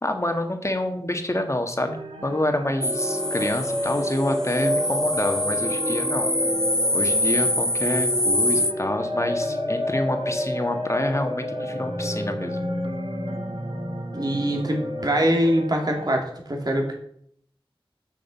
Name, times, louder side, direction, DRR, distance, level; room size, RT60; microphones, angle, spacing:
voice 1, 0.0-6.3 6.9-12.6, left 1 dB, 30° left, 5 dB, 1.6 m, -27 dB
sound 1, 1.8-16.1, right 2 dB, 75° right, 1.1 m, -39 dB
sound 2, 2.8-15.4, left 1 dB, 5° left, 0.8 m, -26 dB
voice 2, 14.1-16.9, equal, 45° right, 1 dB, 2.6 m, -23 dB
7.3 x 6.6 x 7.0 m, 0.66 s
wide cardioid pair, 50°, 10 cm